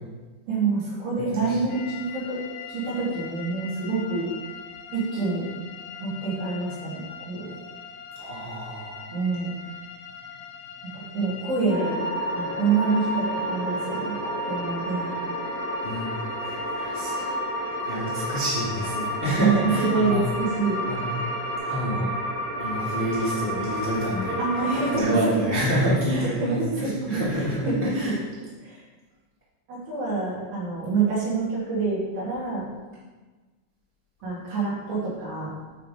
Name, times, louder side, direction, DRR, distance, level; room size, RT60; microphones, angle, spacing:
voice 1, 0.5-2.4 2.7-4.3 4.9-5.5 6.0-7.5 9.1-9.5 10.9-12.0 12.3-15.2 19.4-21.1 24.4-25.5 26.1-27.9 28.6-28.8 29.7-32.7 34.2-35.5, right 4 dB, 85° right, -7 dB, 4.8 m, -27 dB
voice 2, 1.1-1.6 8.1-9.2 15.8-16.2 16.4-20.2 20.8-22.1 22.6-24.6 24.9-28.2, equal, 30° left, -10 dB, 1.0 m, -28 dB
sound 1, 1.7-21.6, left 6 dB, 75° left, 2.4 m, -42 dB
sound 2, 11.7-25.0, equal, 50° left, 1.5 m, -30 dB
9.0 x 3.8 x 5.3 m, 1.3 s
omnidirectional pair, 4.6 m